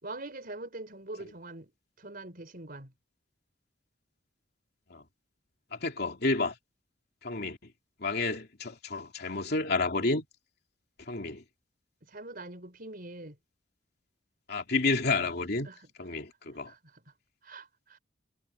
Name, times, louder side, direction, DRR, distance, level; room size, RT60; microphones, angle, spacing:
voice 1, 0.0-1.7 2.0-2.9 12.0-13.4 15.6-15.9 16.7-17.0 17.4-18.0, right 2 dB, 50° right, 4.7 m, -43 dB
voice 2, 5.7-6.5 7.2-7.6 8.0-10.2 11.1-11.4 14.5-15.7 16.0-16.7, left 3 dB, 60° left, 2.9 m, -30 dB
head